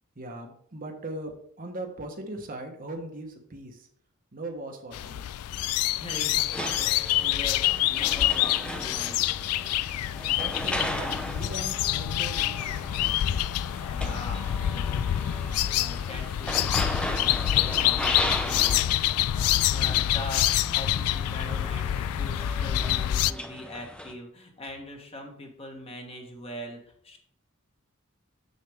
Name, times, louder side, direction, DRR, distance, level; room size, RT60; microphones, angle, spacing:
voice 1, 0.2-1.3 1.6-3.9 4.3-5.2 10.3-13.2, right 2 dB, 40° right, 3 dB, 1.1 m, -39 dB
sound 1, 4.9-23.3, left 13 dB, 90° left, 0.3 m, -26 dB
voice 2, 5.9-9.4 13.9-18.8 19.7-21.9 22.2-27.2, left 1 dB, 30° left, 2 dB, 1.4 m, -42 dB
sound 2, 6.5-24.1, equal, 5° left, 0.7 m, -37 dB
7.4 x 6.6 x 3.5 m, 0.65 s
head